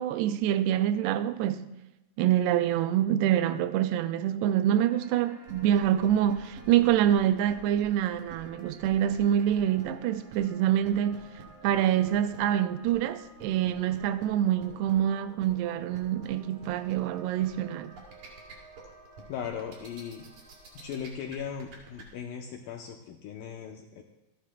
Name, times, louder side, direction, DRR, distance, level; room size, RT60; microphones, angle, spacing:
voice 1, 0.0-1.7 2.2-11.3 11.6-17.9, right 11 dB, 90° right, 2.7 m, -26 dB
sound 1, 4.7-21.0, right 3 dB, 35° right, 1.2 m, -53 dB
sound 2, 5.4-22.0, right 3 dB, 50° right, 3.4 m, -49 dB
voice 2, 19.3-20.3 20.7-24.0, left 8 dB, 75° left, 2.1 m, -38 dB
27.0 x 9.7 x 2.2 m
omnidirectional pair, 4.6 m